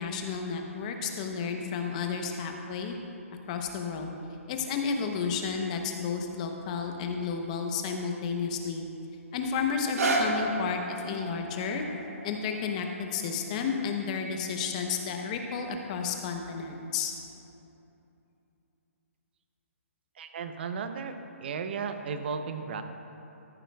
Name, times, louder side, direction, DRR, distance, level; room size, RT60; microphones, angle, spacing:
voice 1, 0.0-2.9 3.5-4.1 4.5-8.9 9.3-11.8 12.2-17.1, left 5 dB, 30° left, 3 dB, 0.8 m, -32 dB
sound 1, 9.7-15.8 16.5-16.6, right 2 dB, 85° right, 1.4 m, -35 dB
voice 2, 20.2-21.1 21.4-22.8, right 6 dB, 45° right, 8 dB, 0.7 m, -34 dB
13.5 x 11.0 x 2.3 m, 2.8 s
hypercardioid pair, 160°, 8 cm